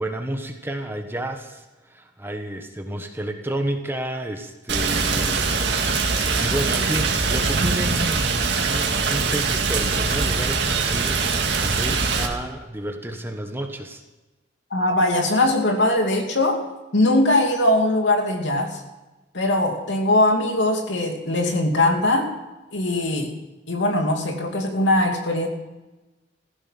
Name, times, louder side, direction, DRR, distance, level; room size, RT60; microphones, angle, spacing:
voice 1, 0.0-14.0, right 1 dB, 15° right, 5 dB, 1.2 m, -31 dB
Rain, 4.7-12.3, right 4 dB, 70° right, 2.1 m, -22 dB
voice 2, 14.7-16.6 16.9-18.8 19.3-22.3 22.7-23.3 23.7-25.5, left 1 dB, 80° left, 3 dB, 2.6 m, -21 dB
15.5 x 14.5 x 5.9 m, 1.1 s
head